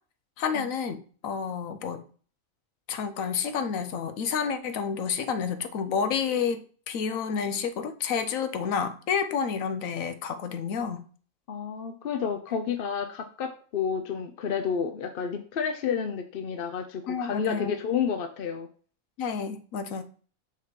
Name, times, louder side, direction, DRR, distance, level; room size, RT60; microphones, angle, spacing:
voice 1, 0.4-2.0 2.9-11.1 17.1-17.8 19.2-20.0, left 6 dB, 75° left, 9 dB, 1.1 m, -30 dB
voice 2, 11.5-18.7, left 7 dB, 55° left, 6 dB, 0.6 m, -30 dB
6.5 x 3.0 x 5.0 m, 0.42 s
omnidirectional pair, 1.4 m